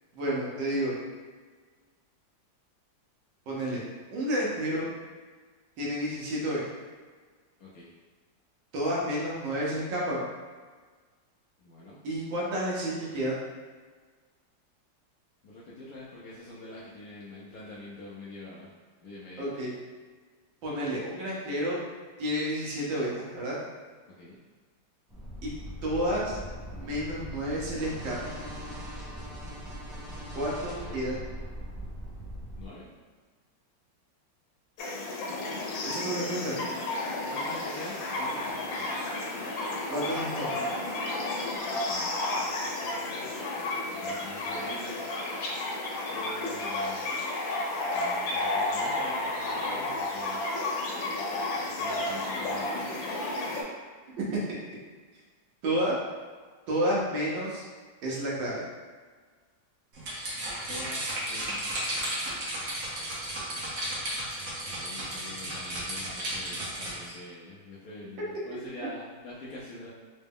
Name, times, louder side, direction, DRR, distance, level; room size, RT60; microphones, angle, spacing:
voice 1, 0.1-0.9 3.5-3.8 4.1-4.9 5.8-6.6 8.7-10.2 12.0-13.4 19.4-19.7 20.6-21.8 22.2-23.6 25.4-25.5 25.8-26.4 26.8-28.2 30.3-31.2 35.8-36.6 39.9-40.6 55.6-56.0 56.7-57.7 58.0-58.6, equal, 80° right, -5 dB, 1.6 m, -30 dB
voice 2, 11.6-12.0 15.4-18.7 19.0-19.5 24.2-24.4 30.7-31.0 32.6-32.9 36.2-36.3 37.3-38.9 41.9-43.3 43.6-45.3 46.1-47.2 47.9-50.4 51.6-53.1 60.7-61.9 64.7-69.9, left 1 dB, 70° left, -7 dB, 0.9 m, -45 dB
sound 1, 25.1-32.7, equal, ahead, 0.4 m, -40 dB
sound 2, 34.8-53.6, left 2 dB, 90° left, 1.4 m, -32 dB
sound 3, 59.9-67.1, right 1 dB, 50° right, 1.1 m, -34 dB
3.9 x 2.2 x 3.5 m, 1.5 s
omnidirectional pair, 2.0 m